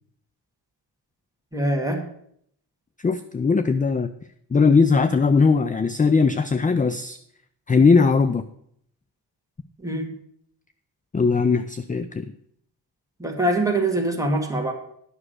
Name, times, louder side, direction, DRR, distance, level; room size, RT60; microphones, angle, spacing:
voice 1, 1.5-2.0 9.8-10.1 13.2-14.7, right 1 dB, 5° right, 2 dB, 1.9 m, -23 dB
voice 2, 3.0-4.1 4.5-7.2 7.7-8.4 11.1-12.3, left 4 dB, 20° left, 11 dB, 0.3 m, -19 dB
9.9 x 6.1 x 6.4 m, 0.68 s
wide cardioid pair, 100°, 45 cm